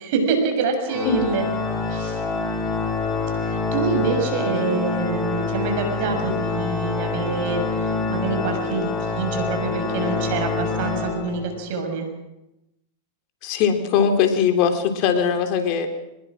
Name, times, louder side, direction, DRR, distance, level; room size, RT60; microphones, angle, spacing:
voice 1, 0.0-1.5 1.9-2.2 3.4-12.1, right 4 dB, 60° right, 5 dB, 6.9 m, -26 dB
Organ, 0.9-11.7, left 4 dB, 20° left, 4.7 m, -26 dB
voice 2, 13.4-15.9, left 7 dB, 50° left, 6 dB, 3.6 m, -20 dB
23.5 x 20.5 x 6.4 m, 0.89 s
hypercardioid pair, 110°, 0 cm